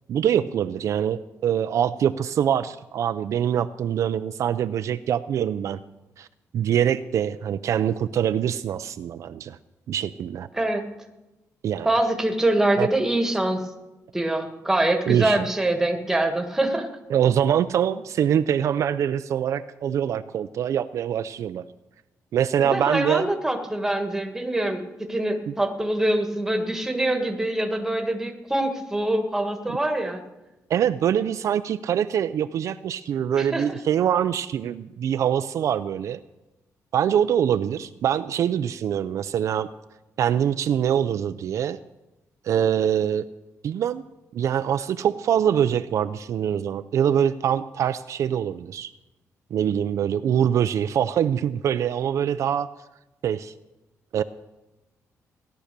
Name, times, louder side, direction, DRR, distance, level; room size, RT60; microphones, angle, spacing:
voice 1, 0.1-5.8 6.2-6.3 6.5-9.6 9.9-10.5 11.6-11.9 12.8-12.9 15.1-15.5 17.1-21.6 22.3-23.3 25.5-25.6 30.7-36.2 36.9-39.7 40.2-41.8 42.4-43.3 43.6-44.0 44.3-48.9 49.5-52.7 53.2-53.5 54.1-54.2, right 9 dB, 60° right, 11 dB, 0.5 m, -24 dB
voice 2, 10.5-10.8 11.8-13.6 14.1-16.9 22.6-30.2 33.4-33.8, right 1 dB, 5° right, 5 dB, 1.5 m, -24 dB
17.0 x 11.5 x 6.7 m, 1.0 s
wide cardioid pair, 170°, 6 cm